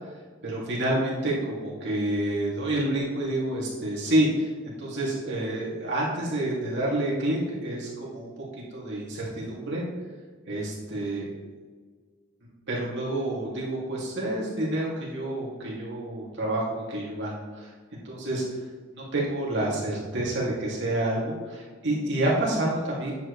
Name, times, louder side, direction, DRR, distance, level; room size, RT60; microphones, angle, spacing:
voice 1, 0.4-4.5 4.8-8.3 8.7-9.8 10.5-11.2 12.7-17.7 18.0-18.4 18.9-23.2, right 1 dB, 60° right, -4 dB, 2.6 m, -28 dB
9.6 x 7.6 x 3.3 m, 1.5 s
head